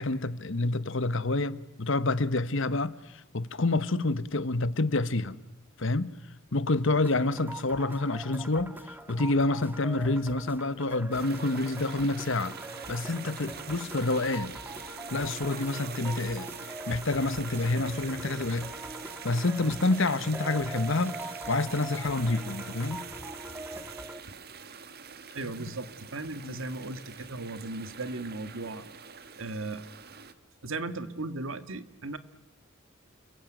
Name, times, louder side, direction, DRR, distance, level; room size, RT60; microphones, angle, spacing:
voice 1, 0.0-5.4 5.8-6.1 6.5-12.5 12.9-14.6 15.1-16.5 16.9-18.7 19.2-21.2 21.5-23.1 26.4-26.6, left 2 dB, 65° left, 1.2 m, -28 dB
sound 1, 7.0-24.2, right 1 dB, 10° right, 2.0 m, -43 dB
sound 2, 11.1-30.3, right 7 dB, 50° right, 1.5 m, -44 dB
voice 2, 25.3-28.8 29.3-29.8 30.6-32.2, right 2 dB, 70° right, 1.7 m, -36 dB
30.0 x 22.0 x 9.2 m
head